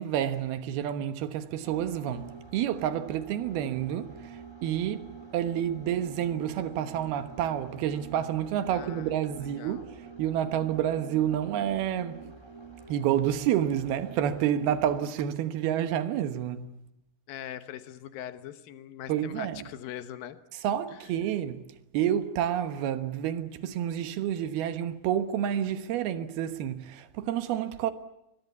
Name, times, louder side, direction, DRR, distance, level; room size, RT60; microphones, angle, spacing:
voice 1, 0.0-12.3 12.9-16.7 19.1-19.7 20.6-21.6 21.9-27.9, right 10 dB, 85° right, 3.2 m, -29 dB
sound 1, 1.6-15.1, right 4 dB, 5° right, 3.0 m, -47 dB
voice 2, 8.7-9.8 17.3-20.4 20.9-21.0, left 11 dB, 75° left, 2.8 m, -42 dB
24.5 x 21.5 x 8.4 m
omnidirectional pair, 4.3 m